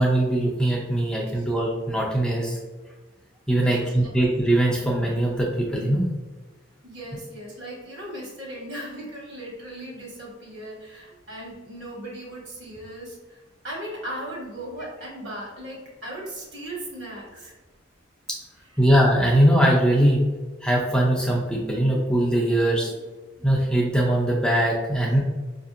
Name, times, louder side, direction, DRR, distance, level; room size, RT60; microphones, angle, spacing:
voice 1, 0.0-2.6 3.5-6.1 18.3-18.4 18.8-20.3 20.6-22.9 23.4-25.2, right 1 dB, 5° left, -3 dB, 0.4 m, -21 dB
voice 2, 3.5-3.9 6.8-17.5 18.7-18.8, right 1 dB, 60° right, -3 dB, 1.3 m, -37 dB
4.9 x 2.7 x 2.4 m, 1.3 s
head